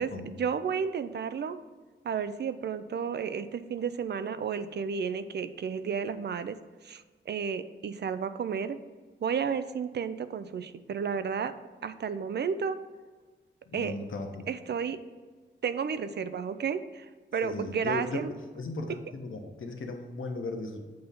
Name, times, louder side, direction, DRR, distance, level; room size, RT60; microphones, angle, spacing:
voice 1, 0.0-1.6 2.0-6.6 6.8-8.8 9.2-11.5 11.8-12.8 13.7-13.9 14.5-15.0 15.6-18.3, right 6 dB, 60° right, 12 dB, 0.4 m, -32 dB
voice 2, 13.7-14.5 17.4-20.8, left 2 dB, 90° left, 3 dB, 0.9 m, -37 dB
7.6 x 2.8 x 5.3 m, 1.4 s
wide cardioid pair, 100°, 20 cm